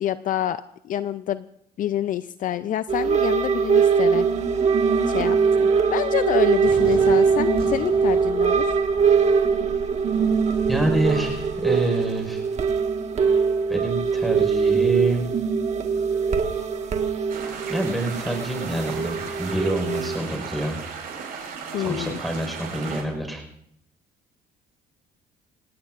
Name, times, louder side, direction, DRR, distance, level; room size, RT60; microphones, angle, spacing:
voice 1, 0.0-1.4 1.8-4.3 5.1-8.8 21.7-22.2, left 11 dB, 55° left, 13 dB, 0.5 m, -27 dB
sound 1, 2.9-20.2, right 6 dB, 40° right, 1.7 m, -22 dB
Cheering / Fireworks, 6.6-12.6, left 2 dB, 35° left, 6.8 m, -42 dB
voice 2, 10.7-12.4 13.7-15.3 17.7-20.8 21.8-23.4, right 1 dB, ahead, 3 dB, 4.8 m, -27 dB
sound 2, 17.3-23.0, right 6 dB, 60° right, 6.5 m, -36 dB
27.0 x 17.5 x 2.5 m, 0.75 s
cardioid pair, 110°, 17 cm